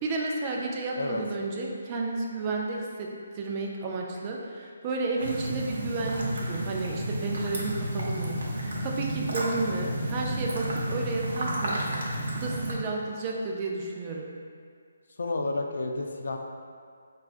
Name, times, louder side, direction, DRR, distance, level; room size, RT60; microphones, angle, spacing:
voice 1, 0.0-11.8 12.3-14.3, right 3 dB, 25° right, -1 dB, 0.4 m, -32 dB
sound 1, 5.2-12.7, right 1 dB, 70° right, 0.7 m, -31 dB
voice 2, 15.2-16.4, left 2 dB, 70° left, 3 dB, 0.4 m, -31 dB
4.7 x 2.3 x 2.4 m, 2.2 s
hypercardioid pair, 165°, 0 cm